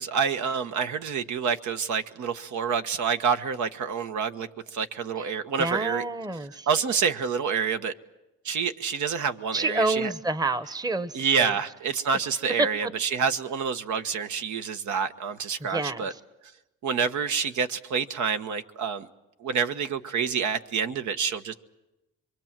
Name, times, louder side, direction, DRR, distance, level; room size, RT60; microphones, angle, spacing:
voice 1, 0.0-6.0 6.7-7.9 8.4-10.1 11.1-16.1 16.8-19.1 19.4-21.5, right 6 dB, 75° right, 8 dB, 1.4 m, -28 dB
voice 2, 5.6-6.7 9.5-11.1 11.4-11.5 15.7-16.1, right 2 dB, 15° right, 13 dB, 1.0 m, -28 dB
26.0 x 23.5 x 7.5 m, 0.96 s
cardioid pair, 90°, 30 cm